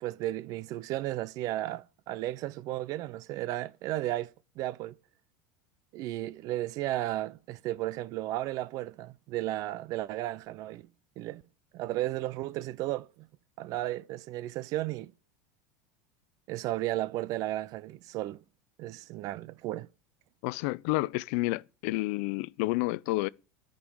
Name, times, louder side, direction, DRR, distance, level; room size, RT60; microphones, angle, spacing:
voice 1, 0.0-5.0 5.9-10.9 11.2-11.4 11.7-13.3 13.6-15.1 16.5-18.4 18.8-19.9, right 15 dB, 40° right, 0.4 m, -34 dB
voice 2, 20.4-23.3, left 21 dB, 55° left, 0.4 m, -30 dB
10.0 x 5.3 x 6.2 m
supercardioid pair, 155°, 9 cm